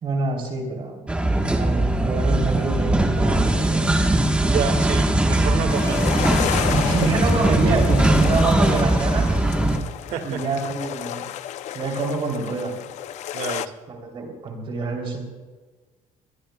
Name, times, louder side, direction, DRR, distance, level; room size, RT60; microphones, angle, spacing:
voice 1, 0.0-1.2 1.6-3.9 6.7-9.3 10.2-11.3 11.7-12.7 13.9-15.2, right 3 dB, 45° right, 1 dB, 3.2 m, -26 dB
sound 1, 1.1-9.8, right 1 dB, 10° right, 1.2 m, -20 dB
voice 2, 4.4-6.2 10.1-10.4 13.3-13.7, right 7 dB, 70° right, 6 dB, 1.9 m, -28 dB
sound 2, 5.7-13.7, left 11 dB, 60° left, 0.5 m, -31 dB
23.5 x 20.5 x 2.3 m, 1.4 s
cardioid pair, 165°, 13 cm